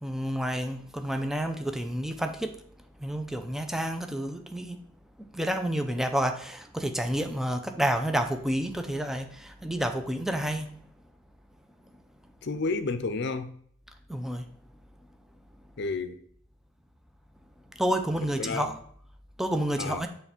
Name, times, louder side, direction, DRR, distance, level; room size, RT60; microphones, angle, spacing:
voice 1, 0.0-2.5 3.0-4.8 5.3-10.7 14.1-14.5 17.8-18.8 19.4-20.1, right 1 dB, ahead, 0.6 m, -29 dB
voice 2, 12.4-13.6 15.8-16.2 18.4-18.7 19.8-20.0, left 3 dB, 60° left, 0.6 m, -31 dB
6.9 x 3.3 x 5.9 m
head